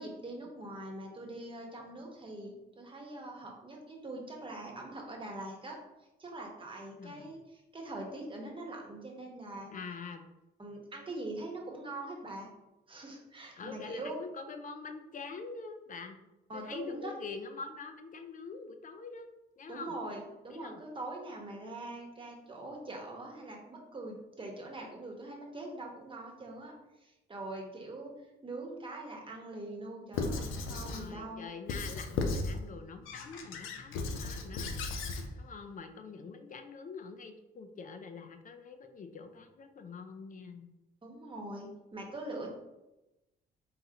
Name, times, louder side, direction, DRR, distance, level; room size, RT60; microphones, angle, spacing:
voice 1, 0.0-5.8 6.2-9.7 10.6-12.5 12.9-14.2 16.5-17.1 19.7-26.7 27.0-28.1 28.4-31.5 41.0-42.5, right 2 dB, 25° right, 1 dB, 1.1 m, -43 dB
voice 2, 7.0-7.4 9.7-10.3 13.5-16.2 16.5-19.3 19.6-20.0 20.5-20.8 30.7-40.7, left 4 dB, 40° left, 6 dB, 0.6 m, -45 dB
Squeak / Writing, 30.1-31.1 31.7-32.6 33.1-35.3, left 3 dB, 90° left, 0.6 m, -35 dB
4.1 x 3.8 x 2.8 m, 0.98 s
cardioid pair, 90°, 20 cm